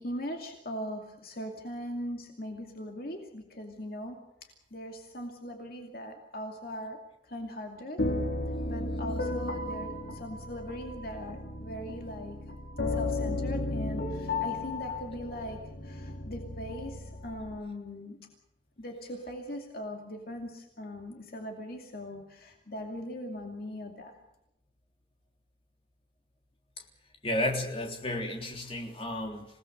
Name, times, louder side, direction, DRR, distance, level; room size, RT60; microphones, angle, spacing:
voice 1, 0.0-4.2 4.7-7.0 7.2-8.0 8.7-18.3 18.8-24.2, equal, 50° left, 2 dB, 2.5 m, -40 dB
sound 1, 8.0-17.6, left 2 dB, 65° left, 2.3 m, -34 dB
voice 2, 27.2-29.5, left 1 dB, 30° left, 1 dB, 3.5 m, -32 dB
27.0 x 18.0 x 6.7 m, 0.84 s
head